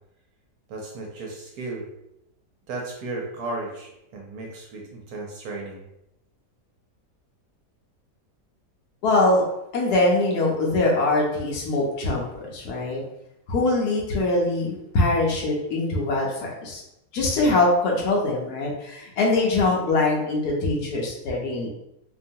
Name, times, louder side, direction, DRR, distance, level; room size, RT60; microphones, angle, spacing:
voice 1, 0.7-1.9 2.7-5.8, right 2 dB, 70° right, -1 dB, 1.0 m, -34 dB
voice 2, 9.0-9.4 9.7-13.0 13.5-16.8 17.1-21.7, left 2 dB, 70° left, -2 dB, 1.1 m, -23 dB
2.8 x 2.3 x 2.6 m, 0.83 s
omnidirectional pair, 1.8 m